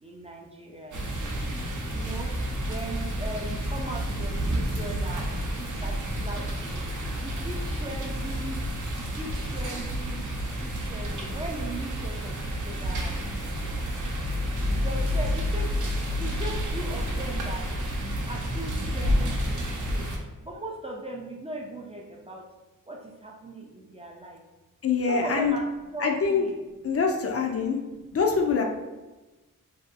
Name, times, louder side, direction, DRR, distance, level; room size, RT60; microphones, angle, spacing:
voice 1, 0.0-1.4 1.9-2.4 2.7-5.3 5.5-6.9 7.2-8.7 8.9-10.2 10.6-13.8 14.8-15.8 16.2-17.7 18.3-20.1 20.4-22.5 22.9-24.4 25.1-25.7 25.9-26.6, right 1 dB, 20° right, -1 dB, 0.4 m, -39 dB
sound 1, 0.9-20.2, equal, 65° right, 0.7 m, -30 dB
voice 2, 24.8-25.6 26.0-26.4 26.8-27.8 28.1-28.6, left 5 dB, 50° left, 2 dB, 0.4 m, -24 dB
2.9 x 2.7 x 2.4 m, 1.1 s
wide cardioid pair, 110°, 32 cm